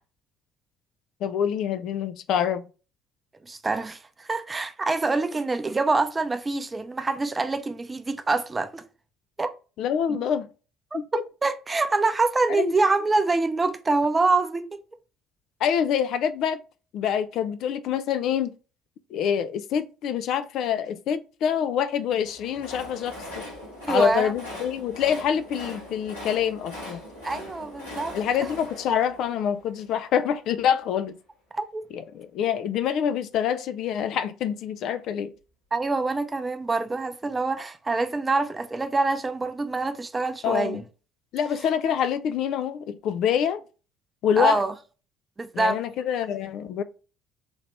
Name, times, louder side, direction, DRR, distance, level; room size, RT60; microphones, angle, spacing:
voice 1, 1.2-2.7 9.8-10.5 10.9-11.2 12.5-12.7 15.6-16.6 16.9-18.5 19.1-23.4 23.9-27.0 28.1-31.2 31.9-35.3 40.4-40.8 41.3-43.6 44.2-44.6 45.5-46.8, left 8 dB, 55° left, 0.3 m, -26 dB
voice 2, 3.5-8.8 9.4-9.5 11.1-14.8 23.8-24.3 27.2-28.2 31.5-31.8 35.7-40.8 44.4-44.7 45.4-45.8, right 3 dB, 20° right, 0.6 m, -25 dB
Train, 22.1-30.2, left 1 dB, 90° left, 1.9 m, -40 dB
4.3 x 2.8 x 3.3 m
figure-of-eight pair, 55°, 0 cm